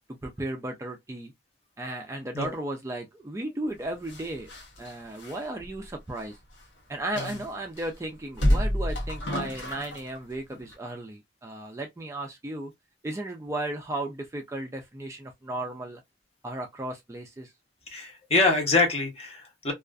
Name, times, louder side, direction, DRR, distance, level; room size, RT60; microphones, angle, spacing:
voice 1, 0.2-1.3 1.8-4.5 4.8-6.4 6.9-12.7 13.0-16.0 16.4-17.5, right 1 dB, 15° right, 0.3 m, -35 dB
sound 1, 4.0-6.3 6.6-6.7 7.2-7.9 8.3-10.2 10.5-10.7, equal, 75° left, 0.8 m, -29 dB
voice 2, 17.9-19.7, left 3 dB, 35° left, 0.7 m, -25 dB
2.4 x 2.3 x 2.2 m
head